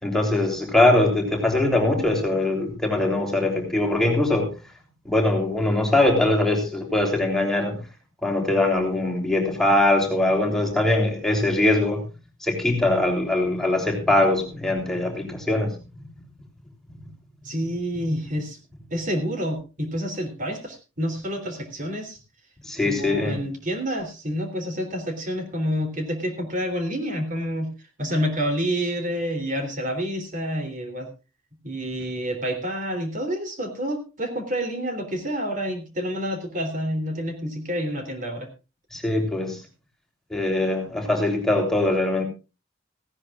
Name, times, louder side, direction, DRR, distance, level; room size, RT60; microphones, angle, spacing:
voice 1, 0.0-4.5 5.0-7.8 8.2-12.0 12.4-15.7 22.6-23.4 38.9-39.6 40.3-42.2, left 2 dB, ahead, 1 dB, 3.3 m, -22 dB
voice 2, 17.4-18.6 18.9-22.2 22.8-27.7 28.0-31.1 31.6-38.5, equal, 40° right, 6 dB, 3.3 m, -28 dB
17.5 x 16.5 x 2.4 m, 0.30 s
head